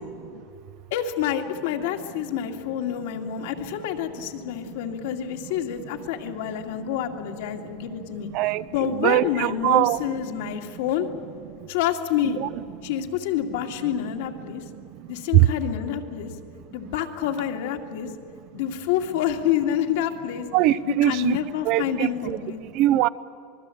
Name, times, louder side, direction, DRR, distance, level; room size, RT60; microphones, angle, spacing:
voice 1, 0.9-8.3 8.7-11.1 11.7-12.4 12.8-14.6 15.1-16.3 16.7-18.1 18.5-20.5 21.0-22.6, left 10 dB, 65° left, 4 dB, 2.3 m, -28 dB
voice 2, 9.0-10.0 12.4-12.5 15.3-15.5 20.5-21.4 21.7-22.4 22.8-23.1, right 15 dB, 40° right, 17 dB, 0.5 m, -20 dB
26.0 x 21.0 x 8.5 m, 2.7 s
supercardioid pair, 175°, 0 cm